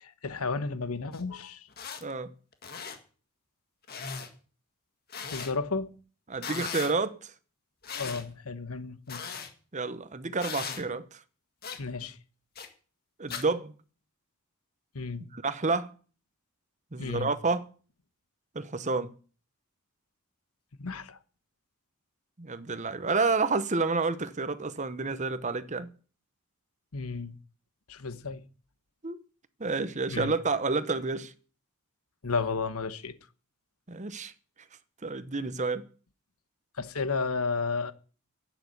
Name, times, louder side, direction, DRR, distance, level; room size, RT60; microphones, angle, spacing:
voice 1, 0.0-1.7 5.3-6.0 8.0-9.2 11.8-12.2 14.9-15.3 17.0-17.3 20.8-21.2 26.9-27.4 27.9-28.4 30.1-30.4 32.2-33.1 36.8-37.9, left 4 dB, 80° left, 1.1 m, -33 dB
sound 1, 1.1-1.2 1.7-2.0 2.5-3.0 3.9-4.3 5.1-5.5 6.4-6.9 7.8-8.2 9.1-9.5 10.4-10.8 11.6-11.8 12.6-12.7 13.3-13.4, left 6 dB, 45° left, 1.8 m, -38 dB
voice 2, 2.0-2.3 6.3-7.3 9.7-11.2 13.2-13.7 15.3-16.0 16.9-17.7 18.5-19.1 22.4-25.9 29.0-29.2 29.6-31.3 33.9-34.3 35.0-35.9, right 3 dB, 35° right, 0.9 m, -29 dB
12.0 x 9.3 x 8.1 m
head